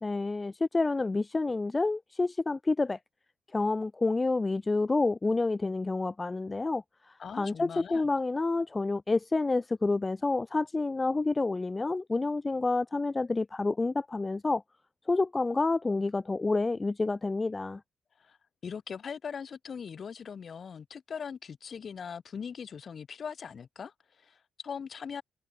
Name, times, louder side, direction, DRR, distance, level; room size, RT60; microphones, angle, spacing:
voice 1, 0.0-3.0 3.5-14.6 15.1-17.8, left 3 dB, 25° left, 0.7 m, -29 dB
voice 2, 7.2-8.1 18.2-18.4 18.6-25.2, left 6 dB, 50° left, 2.1 m, -40 dB
cardioid pair, 80°, 0 cm